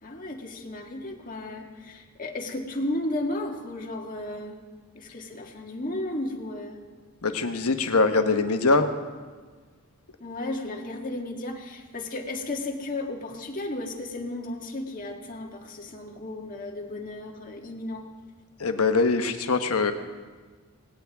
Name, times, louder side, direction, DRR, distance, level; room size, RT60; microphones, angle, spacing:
voice 1, 0.0-4.6 4.9-6.8 10.2-18.0, left 1 dB, 40° left, 1 dB, 1.7 m, -34 dB
voice 2, 7.2-8.9 18.6-19.9, left 3 dB, 80° left, 7 dB, 1.1 m, -23 dB
18.0 x 17.0 x 3.5 m, 1.4 s
head